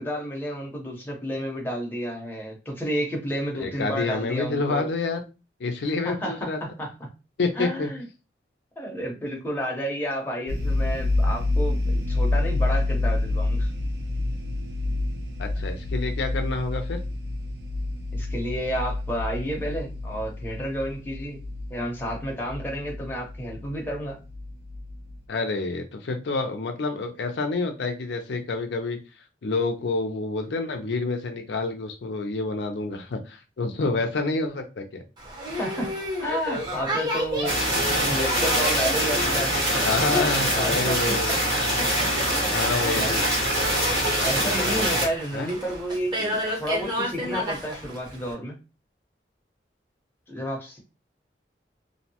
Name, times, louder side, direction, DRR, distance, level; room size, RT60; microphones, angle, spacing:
voice 1, 0.0-4.9 6.0-6.9 7.6-8.0 8.8-13.7 18.1-21.4 21.7-24.2 35.6-35.9 36.2-41.6 42.2-43.2 44.2-48.6 50.3-50.8, equal, 10° left, -1 dB, 0.7 m, -31 dB
voice 2, 3.5-5.2 5.6-6.6 7.4-7.9 15.4-17.0 25.3-29.0 29.4-35.0 37.4-37.5 39.9-41.4 42.5-43.2 45.3-45.5, left 3 dB, 80° left, 5 dB, 0.5 m, -28 dB
sound 1, 10.5-25.2, left 2 dB, 70° right, 0.4 m, -28 dB
Boat Water vehicle, 35.2-48.3, equal, 25° right, 0.7 m, -32 dB
sound 2, 37.4-45.1, equal, 85° right, 1.0 m, -24 dB
2.6 x 2.1 x 2.8 m, 0.30 s
head